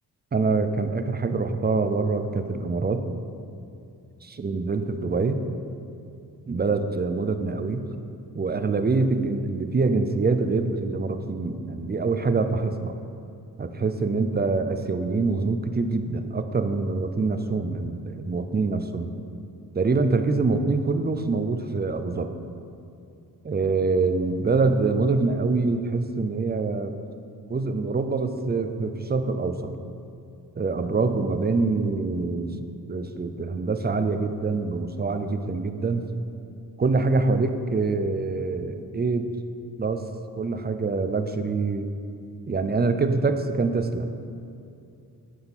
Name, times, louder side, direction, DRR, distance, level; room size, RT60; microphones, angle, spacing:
voice 1, 0.3-3.0 4.2-5.4 6.5-7.8 8.3-12.9 13.6-19.2 19.7-22.3 23.4-26.9 27.5-29.7 30.6-36.0 36.8-39.3 39.8-40.0 40.4-41.9 42.5-44.1, right 3 dB, 25° right, 8 dB, 0.5 m, -25 dB
8.7 x 3.8 x 5.9 m, 2.5 s
cardioid pair, 65°, 37 cm